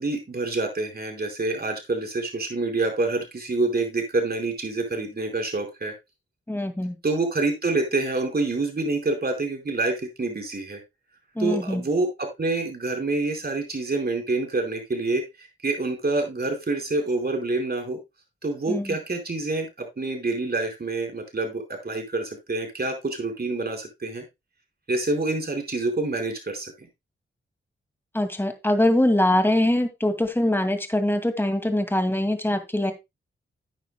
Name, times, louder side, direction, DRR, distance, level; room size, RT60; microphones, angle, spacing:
voice 1, 0.0-5.9 7.0-10.8 11.4-18.0 18.4-24.2 24.9-26.9, right 3 dB, 50° right, 3 dB, 4.3 m, -27 dB
voice 2, 6.5-7.0 11.4-11.9 18.7-19.0 28.1-32.9, left 1 dB, 10° left, 7 dB, 2.2 m, -23 dB
13.0 x 9.2 x 2.2 m, 0.22 s
cardioid pair, 60°, 21 cm